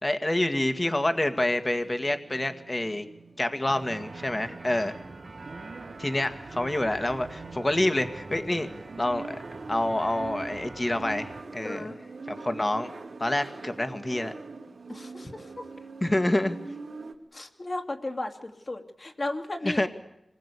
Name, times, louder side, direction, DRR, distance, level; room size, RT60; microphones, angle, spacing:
voice 1, 0.0-3.1 3.4-4.9 6.0-8.7 9.0-9.4 9.7-11.9 12.3-12.9 13.2-14.3 16.0-16.6 19.6-19.9, left 1 dB, 30° left, 8 dB, 1.9 m, -27 dB
sound 1, 0.8-17.1, right 3 dB, 90° right, 2.7 m, -44 dB
sound 2, 3.6-11.4, right 3 dB, 65° right, 1.5 m, -45 dB
voice 2, 11.6-12.0 14.9-15.7 17.3-19.8, left 2 dB, 45° left, 5 dB, 2.7 m, -35 dB
26.0 x 21.0 x 8.4 m, 0.86 s
wide cardioid pair, 55°, 0 cm